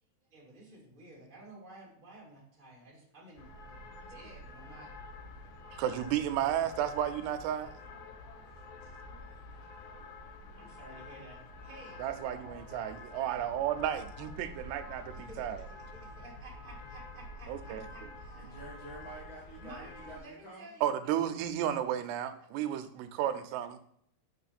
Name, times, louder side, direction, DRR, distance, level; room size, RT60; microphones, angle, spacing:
voice 1, 0.3-4.9 6.3-7.0 10.6-12.7 15.1-15.4 15.7-18.6 19.6-20.9, right 1 dB, 15° right, -5 dB, 1.7 m, -53 dB
sound 1, 3.4-20.2, left 2 dB, 75° left, 2.4 m, -48 dB
voice 2, 5.8-7.7 12.0-15.6 17.5-17.8 20.8-23.8, right 10 dB, 85° right, 9 dB, 2.8 m, -33 dB
voice 3, 18.4-20.7, right 2 dB, 55° left, -5 dB, 1.4 m, -48 dB
6.3 x 6.3 x 4.2 m, 0.67 s
omnidirectional pair, 4.8 m